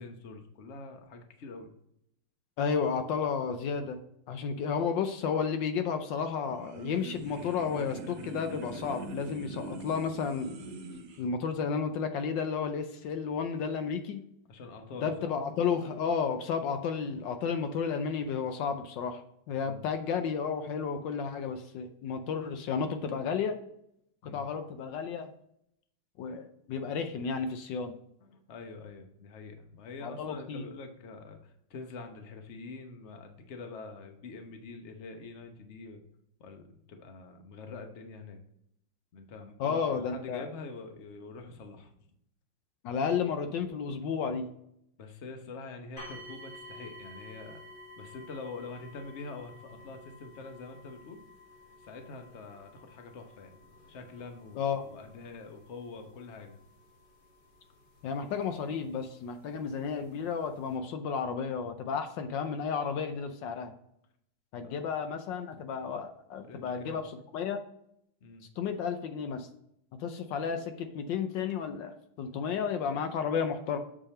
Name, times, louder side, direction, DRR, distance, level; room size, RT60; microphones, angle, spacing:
voice 1, 0.0-1.7 9.6-9.8 14.5-15.3 19.6-19.8 24.2-24.5 28.2-36.0 36.4-38.4 39.1-41.9 45.0-47.6 48.0-51.2 51.8-53.5 53.9-56.5 64.6-64.7 66.4-67.0 68.2-68.5, left 3 dB, 45° left, 5 dB, 1.1 m, -45 dB
voice 2, 2.6-4.0 4.3-10.6 11.2-14.2 15.0-19.2 19.5-23.6 24.2-25.3 26.2-28.0 30.0-30.6 39.6-40.5 42.8-44.5 54.6-54.9 58.0-63.7 64.5-67.1 67.3-67.6 68.6-69.5 70.0-73.8, left 6 dB, 75° left, 7 dB, 1.3 m, -32 dB
sound 1, 6.3-11.2, right 2 dB, 65° right, 1.3 m, -43 dB
sound 2, 46.0-58.8 59.7-59.8 60.4-60.5, left 1 dB, 25° left, 1.8 m, -51 dB
7.5 x 4.9 x 4.2 m, 0.73 s
omnidirectional pair, 2.1 m